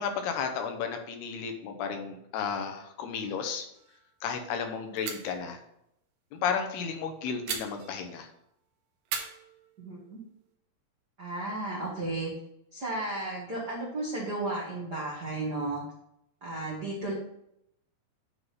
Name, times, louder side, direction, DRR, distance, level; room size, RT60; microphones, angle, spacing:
voice 1, 0.0-3.6 4.2-5.6 6.3-8.3, left 6 dB, 80° left, 5 dB, 2.9 m, -33 dB
sound 1, 3.7-4.1 4.4-4.5 5.0-5.4 7.5-8.3 9.0-10.2, right 7 dB, 70° right, 2.1 m, -39 dB
voice 2, 9.8-10.2 11.2-12.3 12.7-15.8 16.4-17.1, right 2 dB, 55° right, -6 dB, 1.1 m, -34 dB
9.4 x 3.8 x 5.5 m, 0.77 s
omnidirectional pair, 4.6 m